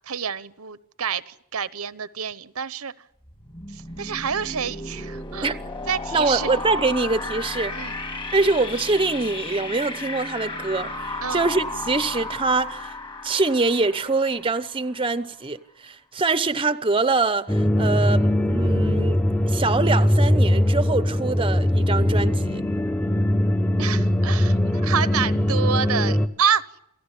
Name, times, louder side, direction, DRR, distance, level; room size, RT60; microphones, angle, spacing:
voice 1, 0.1-2.9 3.7-5.6 5.9-6.6 7.7-8.0 11.2-11.5 23.8-26.8, right 7 dB, 75° right, 1.0 m, -28 dB
sound 1, 3.2-14.9, left 2 dB, 20° left, 2.1 m, -34 dB
voice 2, 6.1-7.8 8.3-13.0 13.2-22.6, right 3 dB, 25° right, 0.9 m, -24 dB
sound 2, 17.5-26.3, left 1 dB, 5° left, 1.0 m, -21 dB
28.5 x 16.0 x 10.0 m
head